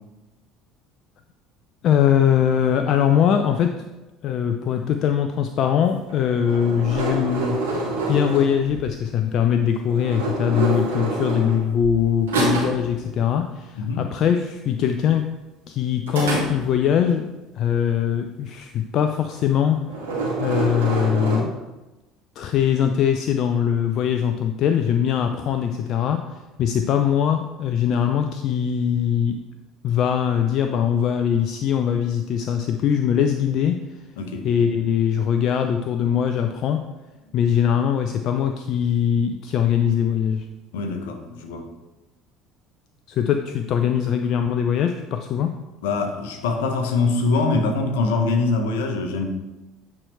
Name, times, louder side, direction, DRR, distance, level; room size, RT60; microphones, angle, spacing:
voice 1, 1.8-3.9 4.2-7.6 8.1-15.3 15.7-17.3 17.5-19.9 20.4-21.6 22.4-29.4 29.8-34.0 34.4-36.8 37.3-40.5 43.1-45.6, left 8 dB, 50° left, 6 dB, 0.4 m, -21 dB
sound 1, 6.1-8.9 9.9-12.0 12.3-12.9 16.1-17.0 19.3-19.6 19.8-21.4, right 2 dB, 80° right, 2.2 m, -26 dB
voice 2, 13.8-14.1 34.2-34.5 40.7-41.7 45.8-49.3, left 3 dB, 70° left, 5 dB, 0.9 m, -23 dB
8.7 x 4.7 x 3.2 m, 1.1 s
figure-of-eight pair, 60°, 0 cm